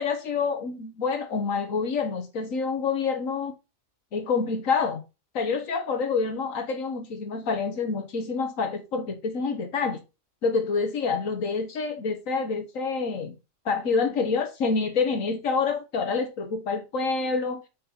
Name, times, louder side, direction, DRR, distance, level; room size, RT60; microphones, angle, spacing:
voice 1, 0.0-3.5 4.1-5.0 5.3-10.0 10.4-13.3 13.6-17.6, left 5 dB, 80° left, 1.5 m, -27 dB
5.3 x 5.3 x 4.4 m
omnidirectional pair, 1.4 m